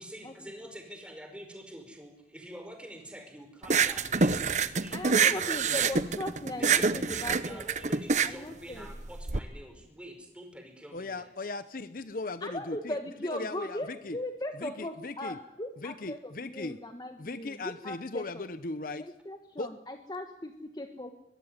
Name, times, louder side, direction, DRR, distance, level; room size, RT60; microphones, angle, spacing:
voice 1, 0.0-5.0 5.2-5.6 6.5-11.5, equal, 5° right, 5 dB, 5.2 m, -46 dB
sound 1, 3.6-9.4, right 5 dB, 40° right, 1.0 m, -26 dB
voice 2, 4.9-7.6 8.2-8.9 12.4-18.4 19.0-21.1, left 1 dB, 25° left, 6 dB, 1.5 m, -38 dB
voice 3, 10.9-13.0 13.2-14.2 14.6-15.4 15.8-16.8 17.2-19.0 19.6-19.7, left 3 dB, 50° left, 12 dB, 0.9 m, -38 dB
23.0 x 21.5 x 9.7 m, 0.88 s
head